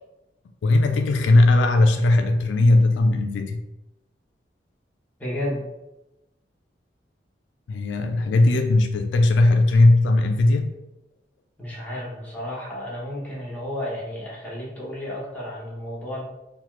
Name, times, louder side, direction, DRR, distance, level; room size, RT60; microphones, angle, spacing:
voice 1, 0.6-3.6 7.7-10.7, left 2 dB, 90° left, 6 dB, 0.3 m, -18 dB
voice 2, 5.2-5.6 11.6-16.2, left 1 dB, 10° left, -6 dB, 0.8 m, -32 dB
2.8 x 2.2 x 3.0 m, 0.93 s
head